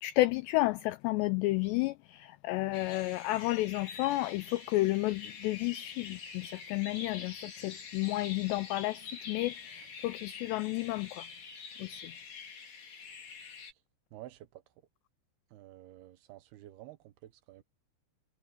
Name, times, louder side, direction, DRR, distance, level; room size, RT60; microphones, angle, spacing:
voice 1, 0.0-11.3 11.8-12.1, left 19 dB, 90° left, 2.4 m, -31 dB
sound 1, 2.7-13.7, left 5 dB, 55° left, 6.2 m, -46 dB
voice 2, 14.1-14.6 15.5-17.6, right 15 dB, 75° right, 2.5 m, -51 dB
omnidirectional pair, 5.6 m